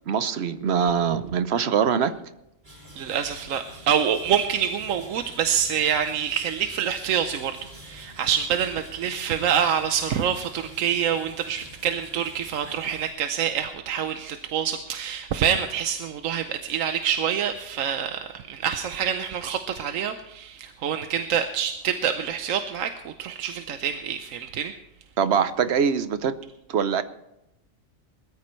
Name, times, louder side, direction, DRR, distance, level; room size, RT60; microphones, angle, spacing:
voice 1, 0.1-2.1 25.2-26.3 26.7-27.0, right 7 dB, 55° right, 12 dB, 1.0 m, -23 dB
sound 1, 2.6-13.1, equal, 35° right, 3.4 m, -47 dB
voice 2, 3.0-7.6 7.8-24.7, right 8 dB, 80° right, 8 dB, 1.1 m, -26 dB
20.5 x 13.5 x 3.2 m, 0.85 s
omnidirectional pair, 1.4 m